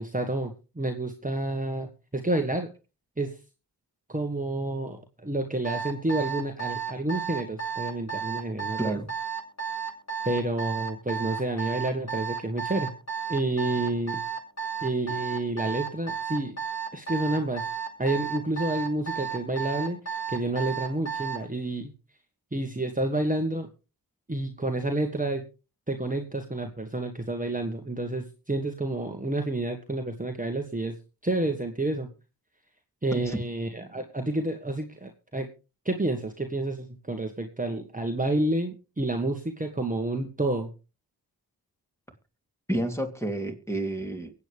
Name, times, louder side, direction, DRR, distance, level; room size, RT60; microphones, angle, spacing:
voice 1, 0.0-2.7 3.2-3.4 4.1-9.0 10.2-12.9 13.3-14.2 14.8-16.6 16.9-17.7 18.0-20.0 20.3-21.9 22.5-23.7 24.3-25.4 25.9-31.0 31.2-32.1 33.0-35.5 35.8-40.7, right 2 dB, 20° right, 4 dB, 1.5 m, -29 dB
Alarm, 5.6-21.5, right 7 dB, 40° left, 8.0 m, -32 dB
voice 2, 33.1-33.4 42.7-44.3, right 1 dB, 5° left, 4 dB, 3.0 m, -30 dB
23.5 x 8.5 x 3.4 m, 0.32 s
cardioid pair, 40°, 41 cm